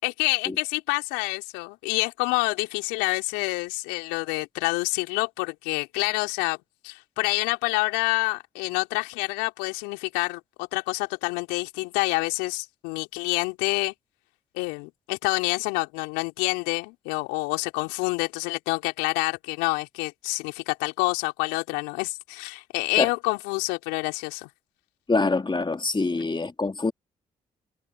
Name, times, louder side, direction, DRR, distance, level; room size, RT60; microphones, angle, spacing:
voice 1, 0.0-6.6 6.8-13.9 14.5-24.5, left 26 dB, 80° left, 4.2 m, -27 dB
voice 2, 25.1-26.9, left 3 dB, 25° left, 2.8 m, -25 dB
hypercardioid pair, 40°, 18 cm